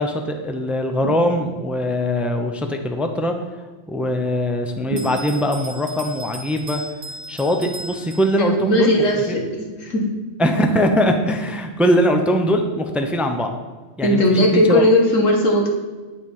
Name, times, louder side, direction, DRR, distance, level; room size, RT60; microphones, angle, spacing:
voice 1, 0.0-3.3 3.9-6.8 7.3-8.9 9.3-9.4 10.4-13.5 14.0-14.9, equal, ahead, 5 dB, 0.7 m, -21 dB
sound 1, 1.0-1.9 4.9-5.8, right 3 dB, 40° right, 0.6 m, -32 dB
Bell, 5.0-8.7, right 1 dB, 55° right, 1.6 m, -37 dB
voice 2, 8.4-10.1 14.0-15.7, left 1 dB, 85° left, 1 dB, 2.2 m, -18 dB
9.4 x 8.7 x 5.5 m, 1.3 s
omnidirectional pair, 1.3 m